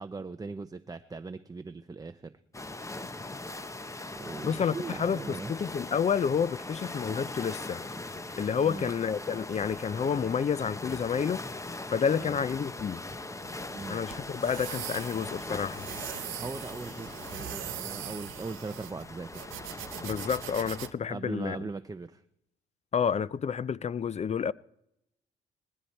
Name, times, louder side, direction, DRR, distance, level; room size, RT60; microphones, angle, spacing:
voice 1, 0.0-2.3 4.2-5.5 8.6-8.9 12.2-12.4 13.7-14.0 16.3-19.4 21.1-22.2, right 4 dB, 20° right, 0.7 m, -39 dB
sound 1, 2.5-20.9, left 2 dB, 15° left, 0.9 m, -40 dB
voice 2, 4.4-7.8 8.4-11.4 11.9-13.0 13.9-15.8 20.0-21.6 22.9-24.5, left 7 dB, 35° left, 0.4 m, -29 dB
sound 2, 13.4-20.9, right 15 dB, 90° right, 0.6 m, -42 dB
20.0 x 13.0 x 4.4 m
cardioid pair, 90°, 20 cm